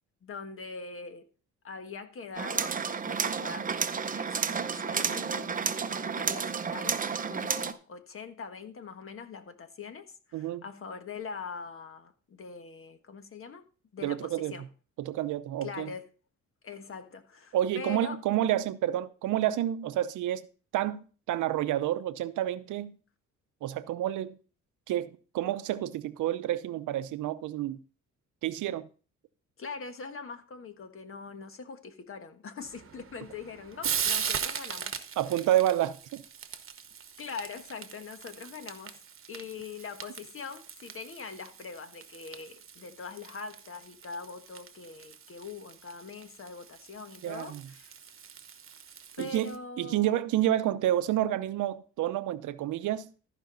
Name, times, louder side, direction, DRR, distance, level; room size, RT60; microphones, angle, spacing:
voice 1, 0.2-1.3 1.6-3.7 4.2-13.7 13.9-14.7 15.6-16.1 16.6-18.2 29.6-35.0 35.3-35.4 37.2-39.0 39.3-47.9 49.1-50.2, left 5 dB, 45° left, 1.5 m, -43 dB
sound 1, 2.4-7.7, right 6 dB, 25° right, 0.7 m, -31 dB
voice 2, 10.3-10.6 14.0-14.5 15.0-15.9 17.5-20.4 20.7-23.0 23.6-24.4 24.9-27.8 28.4-28.9 35.2-36.2 47.2-47.6 49.2-53.1, right 12 dB, 80° right, 0.7 m, -29 dB
Frying (food), 32.6-49.6, right 7 dB, 45° right, 1.1 m, -40 dB
14.0 x 5.3 x 3.9 m
cardioid pair, 90°, 30 cm